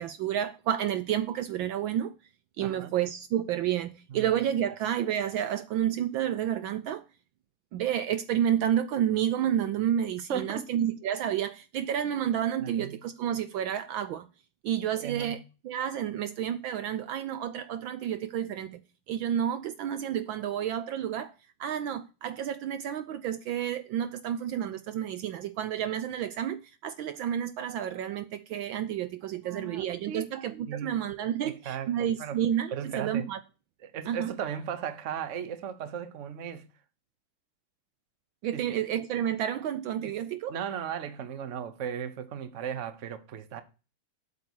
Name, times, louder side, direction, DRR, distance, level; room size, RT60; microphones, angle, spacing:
voice 1, 0.0-2.1 2.6-7.0 7.7-14.3 14.6-15.4 15.6-18.8 19.1-21.3 21.6-33.4 34.1-34.3 38.4-40.6, right 10 dB, 75° right, 1.3 m, -30 dB
voice 2, 2.6-2.9 4.1-4.3 10.3-10.7 12.6-13.0 15.0-15.4 29.4-30.3 30.7-31.0 31.4-32.4 32.7-33.3 33.8-36.7 38.5-38.8 40.0-40.1 40.5-43.6, right 8 dB, 45° right, 1.1 m, -36 dB
8.3 x 5.8 x 6.2 m
omnidirectional pair, 2.4 m